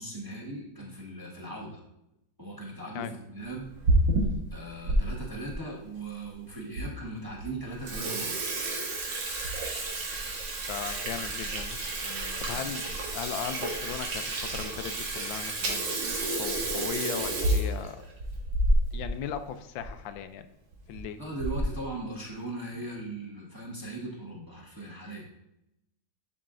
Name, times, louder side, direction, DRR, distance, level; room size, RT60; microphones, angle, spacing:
voice 1, 0.0-1.8 2.4-3.7 4.5-8.4 12.0-12.7 21.2-25.3, right 2 dB, 15° right, -4 dB, 1.3 m, -39 dB
Water tap faucet / Sink (filling or washing), 3.6-5.0 5.5-5.6 6.3-6.4 6.8-6.9 7.2-7.4 7.7-19.1 19.4-19.5 19.8-19.9 20.7-21.0 21.4-21.8, right 1 dB, 75° right, 1.9 m, -29 dB
voice 2, 10.7-11.8 12.4-15.9 16.3-18.0 18.9-20.5 20.9-21.2, left 9 dB, 90° left, 10 dB, 1.3 m, -37 dB
11.5 x 4.8 x 2.5 m, 0.83 s
omnidirectional pair, 2.0 m